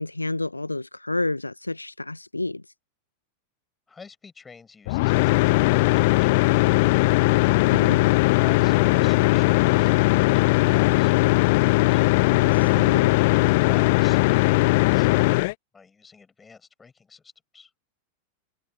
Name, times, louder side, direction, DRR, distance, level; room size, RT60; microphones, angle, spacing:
voice 1, 0.0-2.6 12.3-13.2, left 2 dB, 85° left, 1.5 m, -30 dB
voice 2, 3.9-7.5 8.3-12.0 15.7-17.7, left 5 dB, 15° left, 6.3 m, -46 dB
sound 1, 4.9-15.5, left 23 dB, 50° left, 0.5 m, -19 dB
figure-of-eight pair, 90°, 0 cm